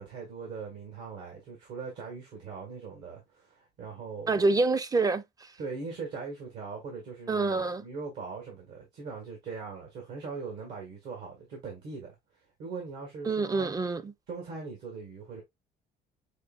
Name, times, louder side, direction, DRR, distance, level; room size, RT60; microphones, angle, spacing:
voice 1, 0.0-4.4 5.6-12.2 12.6-13.7 14.3-15.4, right 4 dB, 75° right, 1.8 m, -40 dB
voice 2, 4.3-5.2 7.3-7.8 13.3-14.1, right 3 dB, 20° right, 0.4 m, -26 dB
6.4 x 3.1 x 2.4 m
cardioid pair, 110°, 17 cm